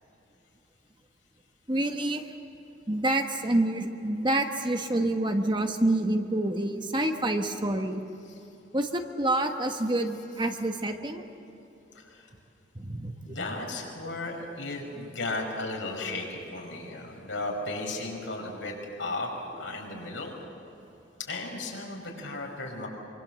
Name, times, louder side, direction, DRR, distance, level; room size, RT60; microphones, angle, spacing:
voice 1, 1.7-2.2 2.9-8.0 8.7-11.2 12.8-13.1, right 1 dB, 25° right, 5 dB, 1.3 m, -27 dB
voice 2, 11.9-12.3 13.2-19.3 19.6-20.3 21.2-22.9, left 2 dB, 80° left, 0 dB, 5.6 m, -35 dB
25.5 x 24.5 x 7.7 m, 2.9 s
head